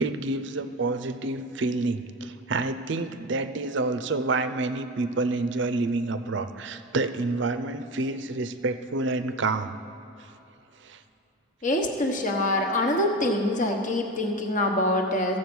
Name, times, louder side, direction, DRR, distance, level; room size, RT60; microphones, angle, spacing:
voice 1, 0.0-9.7 10.8-11.0, right 3 dB, 60° right, 10 dB, 0.5 m, -28 dB
voice 2, 11.6-15.4, left 1 dB, 40° left, 3 dB, 1.1 m, -25 dB
14.5 x 7.5 x 6.1 m, 2.8 s
head